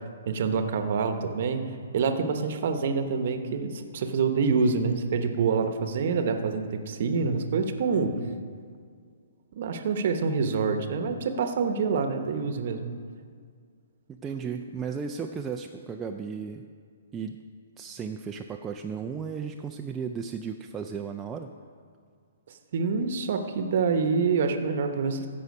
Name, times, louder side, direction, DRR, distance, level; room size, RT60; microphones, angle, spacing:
voice 1, 0.3-8.2 9.5-12.8 22.7-25.3, right 5 dB, 55° right, 7 dB, 0.9 m, -26 dB
voice 2, 14.1-16.7 17.1-17.4 17.8-21.5, right 6 dB, 15° right, 3 dB, 0.4 m, -35 dB
15.0 x 5.6 x 5.3 m, 2.1 s
hypercardioid pair, 150°, 0 cm